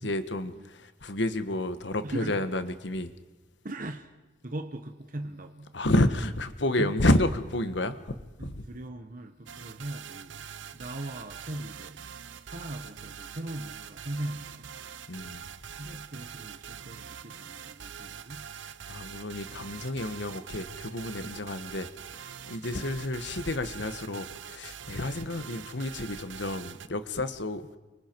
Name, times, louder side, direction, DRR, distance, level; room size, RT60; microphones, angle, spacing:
voice 1, 0.0-3.1 5.7-8.6 15.1-15.5 18.6-22.2 22.5-27.7, left 1 dB, 65° left, 10 dB, 1.4 m, -30 dB
voice 2, 2.0-2.5 3.6-4.1 4.4-5.7 6.8-7.0 8.4-10.4 10.7-12.0 12.5-14.7 15.8-18.5 25.3-25.6, right 1 dB, 45° right, 5 dB, 1.3 m, -39 dB
sound 1, 9.5-26.9, right 8 dB, 75° right, 0.7 m, -44 dB
29.0 x 25.0 x 4.7 m, 1.2 s
head